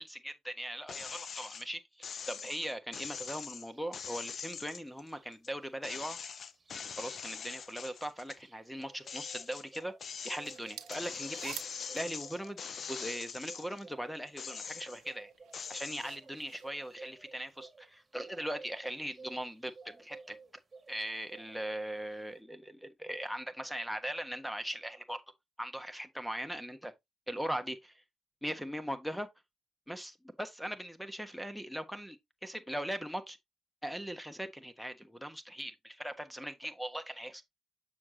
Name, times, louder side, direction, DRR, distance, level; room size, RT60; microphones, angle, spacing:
voice 1, 0.0-6.2 6.7-9.9 10.2-15.3 15.7-20.4 20.9-25.2 25.6-26.9 27.3-28.0 28.4-29.3 29.9-33.4 33.8-37.4, equal, ahead, 1.2 m, -40 dB
sound 1, 0.9-1.6 2.0-5.5 5.8-8.4 8.8-13.8 14.3-15.1 15.5-16.1, left 6 dB, 50° left, 0.6 m, -43 dB
sound 2, 3.1-3.3 3.7-5.3 5.6-5.7 6.0-21.0 21.3-22.4, right 4 dB, 25° right, 2.1 m, -56 dB
sound 3, 10.3-13.4 14.1-17.7, right 12 dB, 85° right, 0.8 m, -51 dB
7.0 x 6.4 x 2.8 m
cardioid pair, 90°, 0 cm